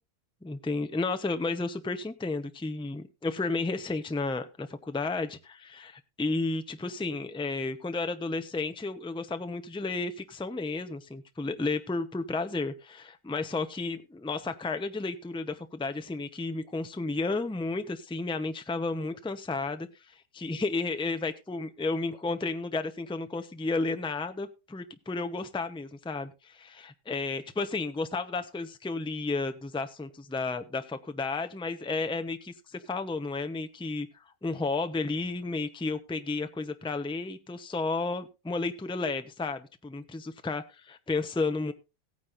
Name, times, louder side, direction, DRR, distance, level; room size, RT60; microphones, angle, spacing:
voice 1, 0.4-19.9 20.3-34.1 34.4-41.7, left 3 dB, 5° left, 0.6 m, -32 dB
17.0 x 9.5 x 2.6 m
omnidirectional pair, 1.6 m